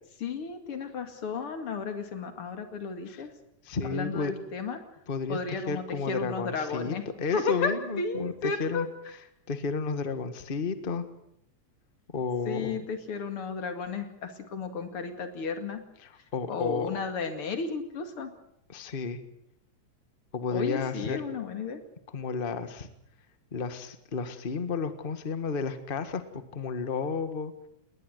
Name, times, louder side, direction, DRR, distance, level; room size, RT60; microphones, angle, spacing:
voice 1, 0.2-3.3 3.8-4.8 5.3-7.0 7.3-8.9 12.5-15.8 16.5-18.3 20.5-21.8, left 5 dB, 50° left, 7 dB, 3.0 m, -33 dB
voice 2, 3.6-4.3 5.1-8.9 9.5-11.0 12.1-12.8 16.0-17.0 18.7-19.2 20.3-21.2 22.1-22.9 23.5-26.2 26.5-27.5, left 5 dB, 25° left, 10 dB, 1.2 m, -32 dB
20.0 x 19.5 x 8.1 m, 0.77 s
omnidirectional pair, 3.4 m